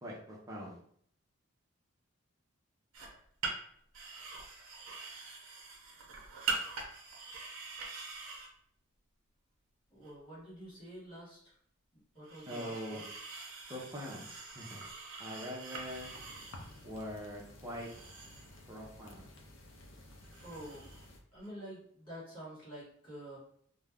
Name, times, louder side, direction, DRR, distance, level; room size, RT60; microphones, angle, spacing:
voice 1, 0.0-0.8 12.4-13.1 13.7-14.8 15.2-16.2 16.8-17.9 18.7-19.3, equal, 15° right, -4 dB, 0.7 m, -43 dB
sound 1, 2.9-3.2 3.4-3.5 3.9-8.5 10.0-10.1 12.2-16.8 17.7-18.6 20.2-21.1 21.3-21.5, right 4 dB, 75° right, 0.7 m, -43 dB
voice 2, 9.9-11.5 12.1-13.0 20.4-20.9 21.3-23.4, right 1 dB, 25° left, -8 dB, 1.2 m, -48 dB
sound 2, 15.8-21.2, left 1 dB, 60° left, 0.5 m, -54 dB
2.5 x 2.2 x 3.4 m, 0.63 s
head